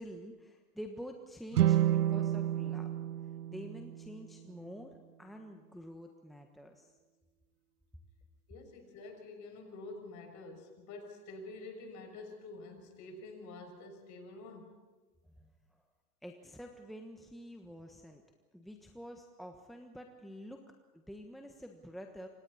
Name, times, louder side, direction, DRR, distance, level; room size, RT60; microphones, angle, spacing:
voice 1, 0.0-2.9 3.5-6.9 15.4-15.8 16.2-18.2 18.5-22.3, equal, ahead, 3 dB, 1.3 m, -48 dB
sound 1, 1.5-4.8, right 12 dB, 90° right, 0.6 m, -31 dB
voice 2, 8.5-14.8, left 2 dB, 40° left, 4 dB, 6.4 m, -48 dB
28.0 x 26.0 x 4.2 m, 1.2 s
hypercardioid pair, 110°, 45 cm